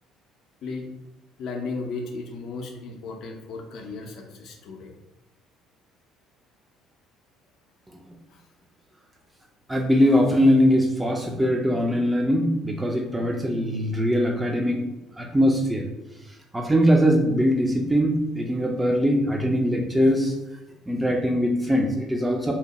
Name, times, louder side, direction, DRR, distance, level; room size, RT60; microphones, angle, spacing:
voice 1, 1.4-4.9, left 3 dB, 55° left, 2 dB, 0.4 m, -35 dB
voice 2, 9.7-14.8 15.2-15.9 16.5-20.3 20.9-22.5, equal, 10° right, 1 dB, 0.4 m, -21 dB
2.7 x 2.1 x 2.9 m, 0.94 s
figure-of-eight pair, 55°, 0 cm